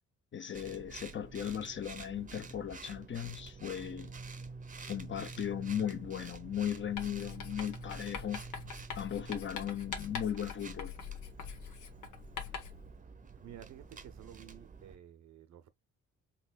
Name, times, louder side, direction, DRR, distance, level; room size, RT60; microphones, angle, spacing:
voice 1, 0.3-4.1 4.8-8.4 9.0-10.9, left 9 dB, 40° left, 0.7 m, -37 dB
sound 1, 0.5-15.0, right 4 dB, 25° right, 0.7 m, -48 dB
Writing, 7.0-12.9, left 7 dB, 85° left, 1.1 m, -44 dB
voice 2, 13.4-15.7, right 10 dB, 65° right, 0.7 m, -52 dB
4.1 x 3.3 x 2.3 m
cardioid pair, 90°, 30 cm